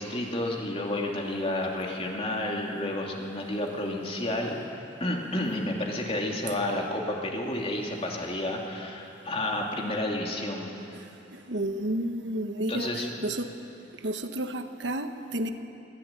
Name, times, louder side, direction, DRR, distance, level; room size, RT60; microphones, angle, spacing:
voice 1, 0.0-4.6 5.0-10.7 12.7-13.1, left 1 dB, 35° left, 0 dB, 2.8 m, -30 dB
voice 2, 10.9-13.5 13.9-15.5, right 1 dB, 85° right, 7 dB, 1.3 m, -32 dB
22.0 x 15.5 x 9.1 m, 2.7 s
head